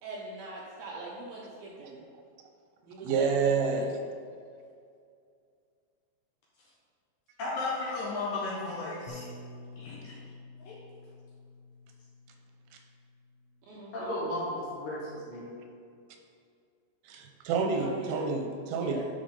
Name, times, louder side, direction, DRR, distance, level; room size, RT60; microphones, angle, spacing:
voice 1, 0.0-2.0 2.9-3.9 13.7-14.3 17.7-18.3 18.7-19.1, right 2 dB, 70° right, -4 dB, 2.3 m, -41 dB
voice 2, 3.0-3.9 17.1-19.1, right 5 dB, 90° right, 4 dB, 3.2 m, -28 dB
voice 3, 7.4-9.3 9.8-10.2 10.6-10.7 13.9-15.5, left 2 dB, 65° left, -6 dB, 2.5 m, -34 dB
Bass guitar, 9.1-13.6 14.4-15.3, left 3 dB, 85° left, 3.1 m, -50 dB
11.0 x 5.3 x 3.8 m, 2.3 s
omnidirectional pair, 5.2 m